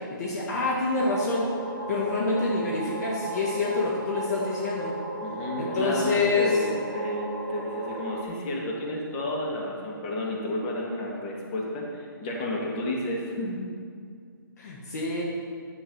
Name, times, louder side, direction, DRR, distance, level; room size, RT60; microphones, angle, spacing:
voice 1, 0.1-1.5 1.9-4.9 5.6-6.6 14.6-15.2, left 3 dB, 50° left, -2 dB, 1.5 m, -27 dB
sound 1, 1.0-8.2, right 3 dB, 50° right, 1.9 m, -35 dB
voice 2, 5.2-13.6, left 1 dB, 30° left, -2 dB, 1.9 m, -31 dB
10.5 x 6.8 x 5.5 m, 2.2 s
hypercardioid pair, 150°, 12 cm